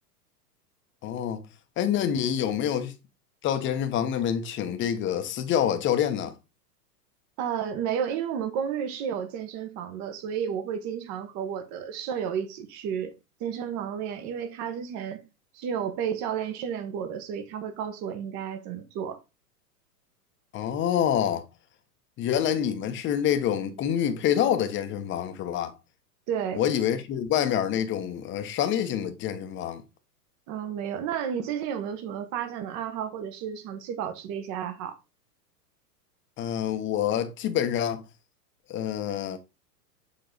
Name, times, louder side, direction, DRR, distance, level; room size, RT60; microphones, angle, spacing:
voice 1, 1.0-1.4 1.8-2.9 3.4-6.3 20.5-21.5 22.2-25.7 26.5-29.8 36.4-38.0 38.7-39.4, left 9 dB, 25° left, 0.9 m, -27 dB
voice 2, 7.4-13.1 13.4-15.2 15.5-19.2 26.3-26.6 30.5-35.0, right 8 dB, 35° right, 1.2 m, -32 dB
7.0 x 3.7 x 3.9 m
hypercardioid pair, 120°, 48 cm